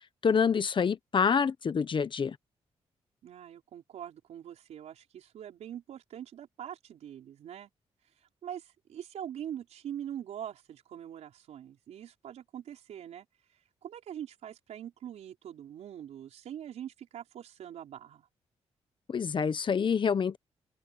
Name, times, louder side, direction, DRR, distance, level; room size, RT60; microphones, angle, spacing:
voice 1, 0.2-2.4 19.1-20.4, left 6 dB, 50° left, 1.1 m, -27 dB
voice 2, 3.2-7.7 8.4-13.2 13.8-18.3, right 10 dB, 90° right, 5.0 m, -43 dB
open air
cardioid pair, 90°, 11 cm